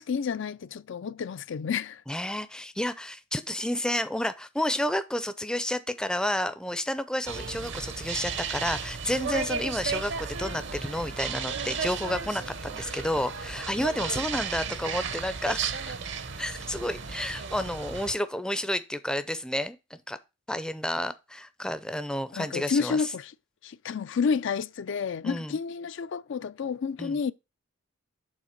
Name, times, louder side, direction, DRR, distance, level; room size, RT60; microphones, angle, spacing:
voice 1, 0.0-2.0 22.4-23.3 23.6-27.3, left 6 dB, 60° left, 0.4 m, -30 dB
voice 2, 2.1-16.0 16.4-20.2 20.5-23.1 25.2-25.6 27.0-27.2, left 1 dB, 5° left, 0.5 m, -31 dB
sound 1, 7.3-18.1, right 5 dB, 60° right, 0.8 m, -34 dB
6.4 x 3.8 x 5.7 m
head